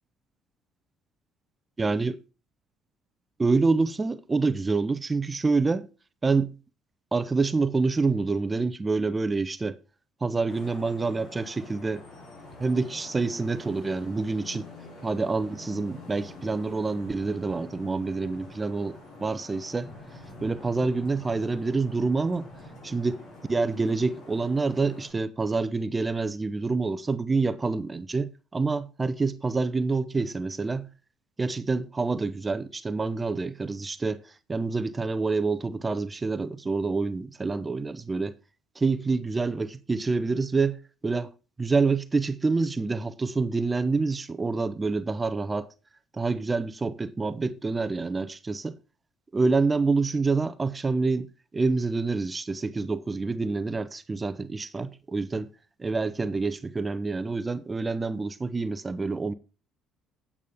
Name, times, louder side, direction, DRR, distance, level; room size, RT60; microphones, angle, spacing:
voice 1, 1.8-2.2 3.4-5.9 6.2-6.5 7.1-9.8 10.2-12.0 12.6-14.6 15.0-19.9 20.4-22.5 22.8-23.2 23.5-30.9 31.4-38.3 38.8-41.3 41.6-45.7 46.1-48.8 49.3-51.3 51.5-55.5 55.8-59.3, right 3 dB, 25° right, 0.7 m, -27 dB
Vehicle horn car horn honking / Traffic noise roadway noise, 10.5-25.1, left 2 dB, 75° left, 5.5 m, -46 dB
9.3 x 8.4 x 3.5 m
supercardioid pair, 85°, 0 cm